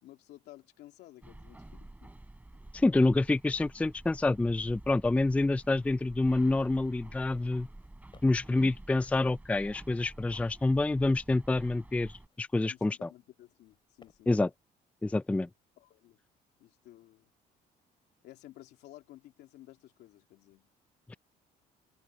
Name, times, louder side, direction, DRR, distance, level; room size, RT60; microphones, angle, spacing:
voice 1, 0.0-2.2 12.6-14.5 15.8-16.2 16.6-17.3 18.2-20.7, left 15 dB, 80° left, 2.7 m, -54 dB
sound 1, 1.2-12.3, right 1 dB, 10° right, 6.4 m, -50 dB
voice 2, 2.7-7.7 8.2-12.1 12.4-13.1 14.3-14.5 15.0-15.5 21.1-21.2, left 2 dB, 10° left, 0.4 m, -27 dB
sound 2, 6.5-7.0 7.6-8.5 9.2-9.9 10.6-11.4 12.1-13.0 13.6-14.4, left 5 dB, 30° left, 6.1 m, -61 dB
cardioid pair, 110°, 17 cm